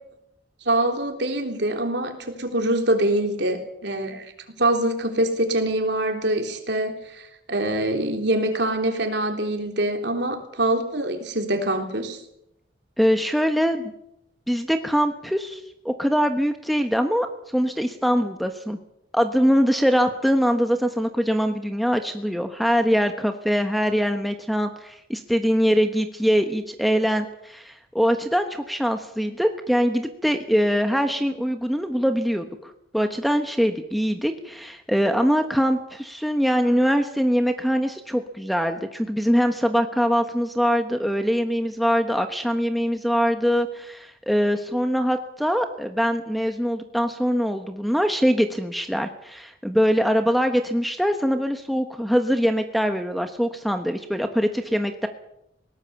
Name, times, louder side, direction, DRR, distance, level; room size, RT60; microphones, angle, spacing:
voice 1, 0.6-4.2 4.6-12.2, right 1 dB, 60° right, 4 dB, 3.6 m, -24 dB
voice 2, 13.0-13.9 14.5-15.6 15.8-17.3 17.5-18.8 19.1-55.1, equal, ahead, 6 dB, 1.2 m, -23 dB
21.0 x 18.5 x 7.1 m, 0.79 s
head